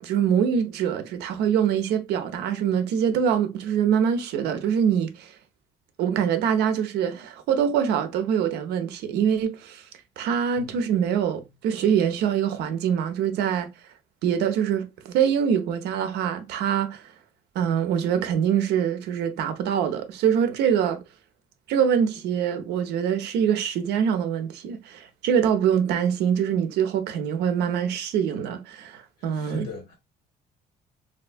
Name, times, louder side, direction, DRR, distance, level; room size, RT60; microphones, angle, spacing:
voice 1, 0.0-5.3 6.0-9.8 10.2-13.7 14.2-17.0 17.5-21.0 21.7-29.7, right 8 dB, 80° right, 0.6 m, -24 dB
voice 2, 29.2-30.0, left 3 dB, 75° left, 1.4 m, -39 dB
3.4 x 2.7 x 2.5 m
cardioid pair, 110°, 17 cm